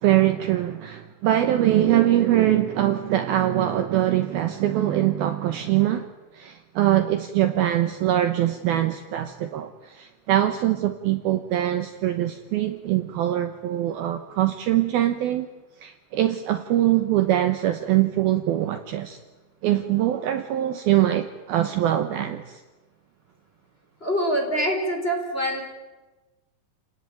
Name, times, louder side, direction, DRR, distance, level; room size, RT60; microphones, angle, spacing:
voice 1, 0.0-6.1 6.3-15.5 15.8-19.2 19.6-22.6, right 13 dB, 85° right, 9 dB, 2.1 m, -23 dB
voice 2, 24.0-25.6, equal, 15° left, 2 dB, 3.7 m, -25 dB
29.5 x 19.0 x 9.2 m, 1.2 s
omnidirectional pair, 5.9 m